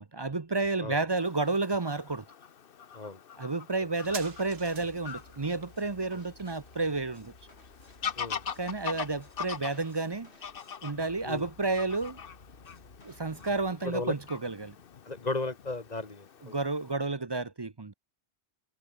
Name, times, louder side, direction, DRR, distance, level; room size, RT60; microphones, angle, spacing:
voice 1, 0.0-2.3 3.4-7.3 8.6-10.3 10.8-12.2 13.0-14.7 16.4-17.9, right 3 dB, 25° right, 0.7 m, -31 dB
Fowl / Bird vocalization bird call bird song, 1.2-16.9, left 7 dB, 60° left, 1.1 m, -43 dB
sound 1, 3.9-11.0 11.3-11.4, right 6 dB, 70° right, 1.5 m, -50 dB
sound 2, 4.0-13.7, left 2 dB, 75° left, 5.9 m, -56 dB
voice 2, 13.8-14.1 15.1-16.5, left 3 dB, 40° left, 1.8 m, -35 dB
omnidirectional pair, 1.1 m